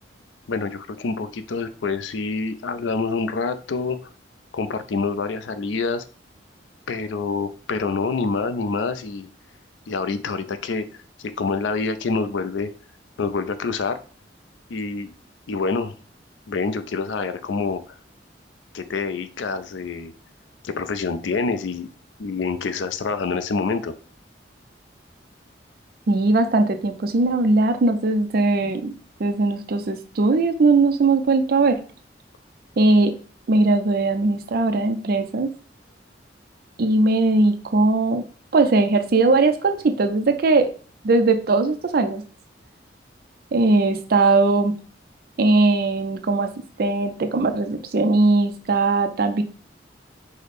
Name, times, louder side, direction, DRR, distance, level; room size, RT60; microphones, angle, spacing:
voice 1, 0.5-4.0 4.5-6.0 6.9-9.3 9.9-10.9 11.2-12.7 13.2-14.0 14.7-15.1 15.5-15.9 16.5-17.8 18.7-20.1 20.6-21.9 22.2-24.0, left 4 dB, 90° left, 11 dB, 0.4 m, -26 dB
voice 2, 26.1-28.9 29.2-31.8 32.8-33.1 33.5-35.5 36.8-38.2 38.5-40.7 41.0-42.2 43.5-44.7 45.4-46.5 46.8-49.4, right 3 dB, 55° right, 6 dB, 0.4 m, -19 dB
4.9 x 2.0 x 4.1 m, 0.41 s
head